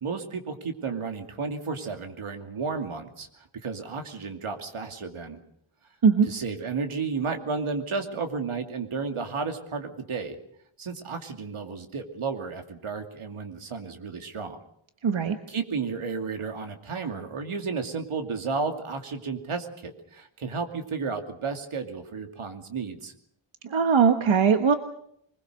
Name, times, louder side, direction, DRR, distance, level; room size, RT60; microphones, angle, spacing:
voice 1, 0.0-5.4 6.3-10.4 10.8-14.6 15.5-23.1, right 4 dB, 90° right, 6 dB, 2.7 m, -33 dB
voice 2, 15.0-15.4 23.6-24.8, right 6 dB, 70° right, 8 dB, 1.4 m, -20 dB
23.0 x 21.0 x 6.5 m, 0.70 s
wide cardioid pair, 120°, 48 cm